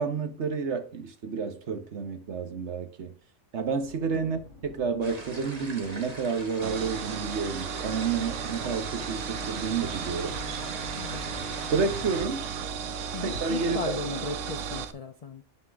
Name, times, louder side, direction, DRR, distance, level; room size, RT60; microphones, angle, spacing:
voice 1, 0.0-3.1 3.5-10.4 11.7-12.5 13.2-14.0, right 5 dB, 65° right, 1.3 m, -30 dB
sound 1, 3.6-14.5, left 2 dB, 15° right, 4.1 m, -50 dB
sound 2, 5.0-12.2, right 2 dB, 30° right, 1.3 m, -42 dB
sound 3, 6.6-14.9, right 7 dB, 80° right, 1.1 m, -35 dB
voice 2, 13.1-15.4, left 4 dB, 50° left, 0.4 m, -36 dB
11.5 x 4.4 x 3.4 m
omnidirectional pair, 1.3 m